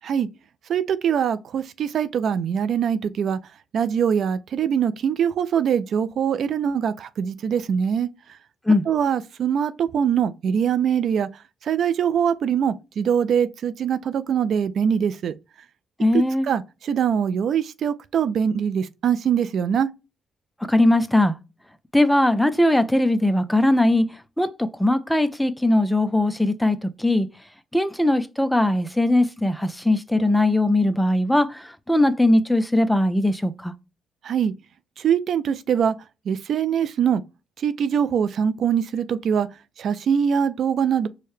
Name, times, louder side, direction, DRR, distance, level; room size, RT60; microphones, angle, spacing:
voice 1, 0.7-3.4 3.7-8.1 8.9-11.3 11.6-15.3 16.1-19.9 34.2-34.5 35.0-36.0 36.3-37.2 37.6-39.5 39.8-41.1, right 8 dB, 65° right, 0.3 m, -23 dB
voice 2, 16.0-16.5 20.7-21.3 21.9-24.0 24.4-24.5 24.8-27.3 27.7-33.7, left 1 dB, 5° left, 0.4 m, -20 dB
4.7 x 2.1 x 3.1 m
cardioid pair, 90°, 0 cm